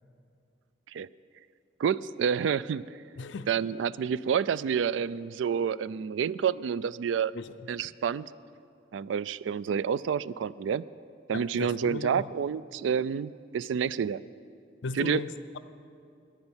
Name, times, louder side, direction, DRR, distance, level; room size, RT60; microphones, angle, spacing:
voice 1, 1.8-2.8 3.5-7.3 7.7-8.3 8.9-10.8 11.3-14.2 15.0-15.2, right 7 dB, 85° right, 19 dB, 0.3 m, -29 dB
voice 2, 3.2-3.5 7.3-7.6 11.3-12.3 14.8-15.6, left 3 dB, 75° left, 12 dB, 0.5 m, -37 dB
10.5 x 9.6 x 8.9 m, 2.4 s
head